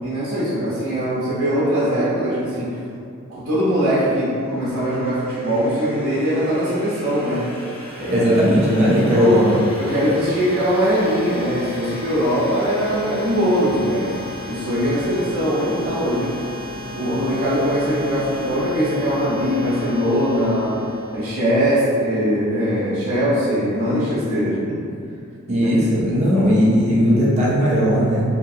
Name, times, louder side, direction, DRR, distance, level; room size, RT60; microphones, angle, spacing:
voice 1, 0.0-2.7 3.3-7.5 8.0-8.3 9.1-9.5 9.8-14.1 14.4-16.4 16.9-20.8 21.1-24.8 25.6-25.7, equal, 85° right, -11 dB, 0.7 m, -21 dB
sound 1, 4.2-21.8, left 1 dB, 45° left, 1.3 m, -36 dB
voice 2, 8.1-9.6 25.5-28.2, equal, 30° right, -7 dB, 0.5 m, -17 dB
2.8 x 2.4 x 2.6 m, 2.4 s
head